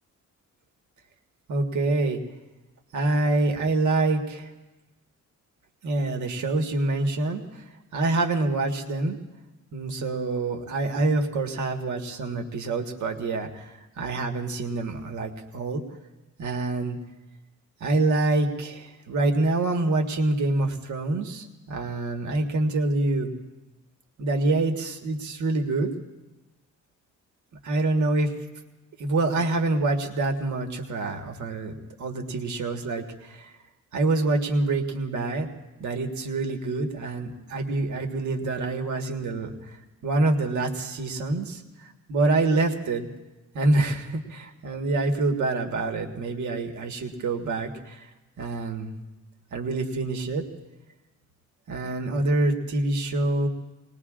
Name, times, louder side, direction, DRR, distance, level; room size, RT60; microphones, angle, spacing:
voice 1, 1.5-2.2 2.9-4.5 5.8-9.2 9.7-15.8 16.4-17.0 17.8-23.3 24.2-25.9 27.6-28.3 29.0-33.5 33.9-35.5 35.8-39.8 40.0-43.1 43.5-48.1 48.4-48.9 49.5-50.5 51.7-53.5, right 2 dB, 80° right, 4 dB, 1.5 m, -26 dB
26.5 x 20.0 x 2.5 m, 1.1 s
cardioid pair, 140°, 30 cm